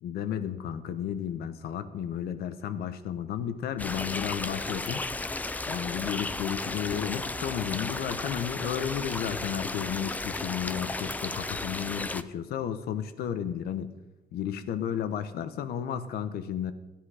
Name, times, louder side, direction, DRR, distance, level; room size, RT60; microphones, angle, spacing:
voice 1, 0.0-5.0 5.6-13.9 14.3-16.7, left 9 dB, 70° left, 11 dB, 1.1 m, -33 dB
sound 1, 3.8-12.2, left 2 dB, 10° left, 0.4 m, -34 dB
15.0 x 10.5 x 5.0 m, 1.1 s
cardioid pair, 170°, 17 cm